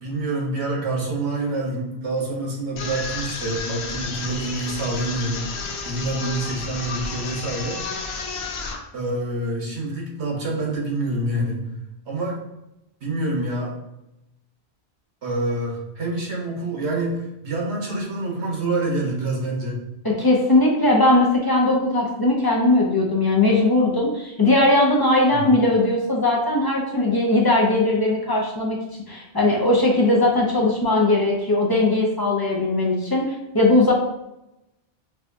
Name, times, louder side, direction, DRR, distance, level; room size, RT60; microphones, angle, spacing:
voice 1, 0.0-5.4 5.8-7.8 8.9-11.7 12.1-12.4 13.0-13.7 15.2-19.8 25.3-25.6, right 2 dB, 85° right, -2 dB, 1.3 m, -27 dB
sound 1, 2.8-8.8, left 4 dB, 80° left, 0.8 m, -31 dB
voice 2, 20.0-28.8 29.1-33.9, left 2 dB, 30° left, -2 dB, 0.5 m, -19 dB
4.7 x 2.3 x 2.6 m, 0.89 s
omnidirectional pair, 1.1 m